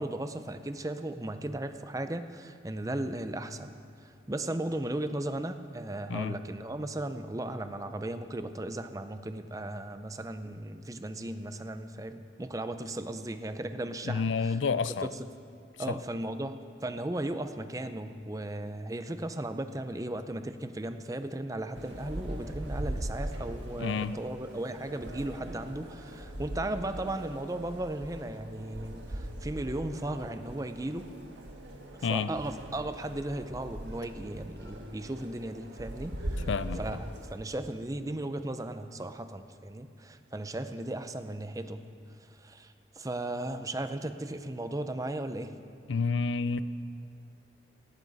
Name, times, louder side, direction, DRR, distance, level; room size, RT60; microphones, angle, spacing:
voice 1, 0.0-3.7 4.0-14.6 15.8-31.1 32.1-36.5 36.8-37.1 37.3-41.8 42.3-45.5, right 1 dB, 20° right, 9 dB, 0.5 m, -36 dB
voice 2, 14.0-15.1 15.9-16.0 23.8-24.2 32.0-32.3 36.5-36.8 45.9-46.6, left 5 dB, 85° left, 15 dB, 0.5 m, -29 dB
sound 1, 21.7-37.3, right 1 dB, 70° right, 1.7 m, -40 dB
18.5 x 14.0 x 4.1 m, 2.3 s
head